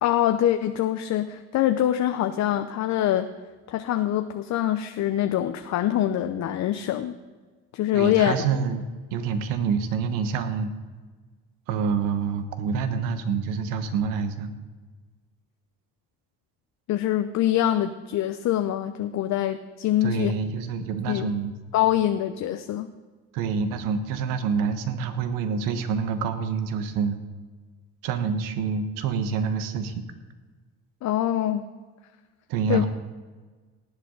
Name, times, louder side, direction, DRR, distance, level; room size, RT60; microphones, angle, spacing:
voice 1, 0.0-3.3 3.7-7.1 7.7-8.3 16.9-20.3 21.1-21.3 21.7-22.9 31.0-31.6 32.7-32.8, left 12 dB, 55° left, 8 dB, 0.7 m, -24 dB
voice 2, 7.9-8.8 9.1-10.7 11.7-14.5 20.0-21.5 23.3-27.2 28.0-30.0 32.5-32.9, right 6 dB, 75° right, 9 dB, 1.3 m, -27 dB
18.5 x 8.3 x 4.0 m, 1.4 s
supercardioid pair, 80°, 33 cm